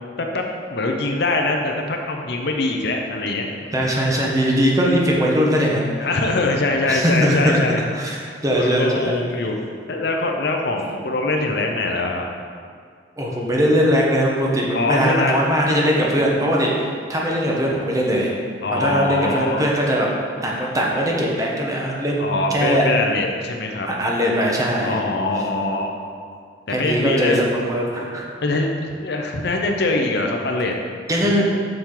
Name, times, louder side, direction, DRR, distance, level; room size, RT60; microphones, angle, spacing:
voice 1, 0.7-3.5 6.0-7.8 8.6-9.6 9.9-12.3 14.7-15.5 18.6-19.7 22.2-23.9 24.8-26.0 26.8-27.4 28.4-30.8 31.2-31.4, left 2 dB, 65° left, 2 dB, 0.7 m, -23 dB
voice 2, 3.7-5.9 6.9-7.6 7.9-8.2 8.4-9.1 13.2-18.3 18.8-20.1 20.4-22.9 23.9-25.0 26.7-28.3 31.1-31.4, equal, 20° right, -3 dB, 1.1 m, -20 dB
7.1 x 6.4 x 3.9 m, 2.1 s
head